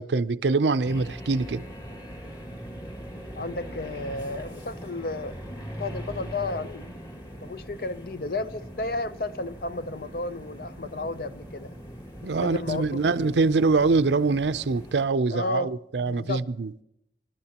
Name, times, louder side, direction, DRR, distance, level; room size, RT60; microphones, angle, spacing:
voice 1, 0.0-1.6 12.2-16.8, right 3 dB, 85° right, 0.5 m, -24 dB
sound 1, 0.8-15.0, equal, 25° left, 2.2 m, -41 dB
voice 2, 3.4-5.3 5.8-6.9 7.4-11.8 12.2-13.4 15.3-15.7 16.0-16.5, left 2 dB, 55° left, 0.7 m, -32 dB
28.0 x 12.5 x 2.9 m
head